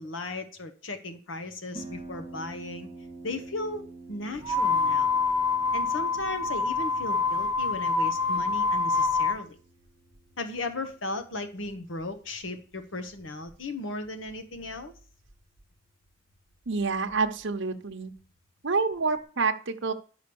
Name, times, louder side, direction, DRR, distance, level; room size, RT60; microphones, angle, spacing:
voice 1, 0.0-2.9 3.2-5.2 5.7-9.6 10.4-14.9, left 2 dB, 75° left, 9 dB, 1.1 m, -36 dB
Harp, 1.7-19.2, right 2 dB, 45° left, 2.0 m, -50 dB
sound 1, 4.4-9.4, left 4 dB, 20° right, 0.9 m, -26 dB
voice 2, 16.7-18.1 18.6-19.9, right 4 dB, 65° right, 4 dB, 0.9 m, -27 dB
11.0 x 5.1 x 7.0 m, 0.41 s
head